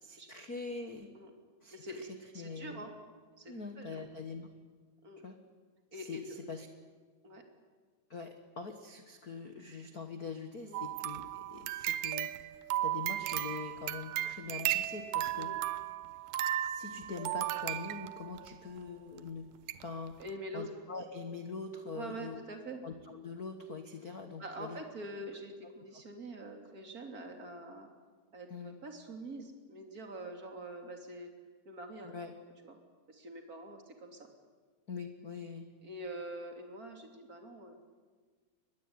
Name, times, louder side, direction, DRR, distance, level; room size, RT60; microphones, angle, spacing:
voice 1, 0.0-1.1 1.6-1.8 2.3-2.9 3.5-4.5 5.2-5.4 5.9-6.7 8.1-12.3 12.8-15.5 16.6-19.5 19.8-20.2 20.5-22.4 22.8-24.8 28.5-28.8 32.0-32.3 34.9-35.7, left 4 dB, 80° left, 6 dB, 0.8 m, -43 dB
voice 2, 1.7-2.1 2.3-2.9 3.4-4.0 5.0-5.2 5.9-6.4 7.2-7.4 10.6-10.8 15.4-15.6 20.2-20.6 21.9-22.8 24.4-27.9 28.3-31.3 31.6-32.1 32.6-32.8 33.1-34.3 35.8-37.7, right 1 dB, 25° right, 3 dB, 3.1 m, -45 dB
sound 1, 10.7-18.5 19.2-19.3 19.7-19.8 20.2-20.3, right 14 dB, 75° right, 2.4 m, -35 dB
24.0 x 20.0 x 9.7 m, 1.5 s
omnidirectional pair, 4.2 m